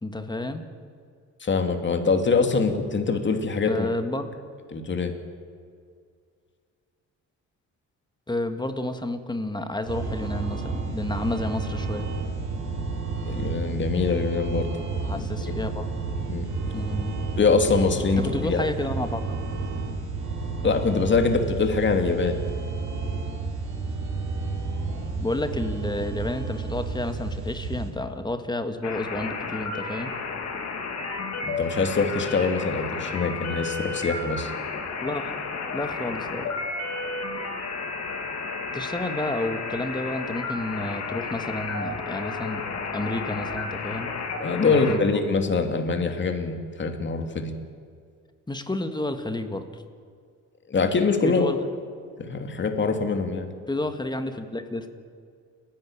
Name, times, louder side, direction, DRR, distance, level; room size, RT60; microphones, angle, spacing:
voice 1, 0.0-0.7 3.7-4.4 8.3-12.1 15.0-15.9 16.7-17.2 18.2-19.4 25.2-30.1 35.0-35.4 35.7-36.5 38.7-42.6 42.9-44.1 44.6-45.0 48.5-49.8 51.2-51.6 53.7-54.9, left 1 dB, 15° left, 8 dB, 1.8 m, -30 dB
voice 2, 1.4-3.9 4.7-5.1 13.2-14.7 15.1-15.5 16.3-16.5 17.4-18.7 20.6-22.4 31.4-34.5 44.4-47.5 50.7-51.5 52.2-53.5, left 4 dB, 40° left, 5 dB, 2.6 m, -24 dB
sound 1, 9.9-27.9, right 4 dB, 85° right, 4.8 m, -31 dB
sound 2, 28.8-45.0, left 4 dB, 60° left, 3.1 m, -32 dB
29.5 x 11.5 x 8.7 m, 2.2 s
cardioid pair, 90°, 30 cm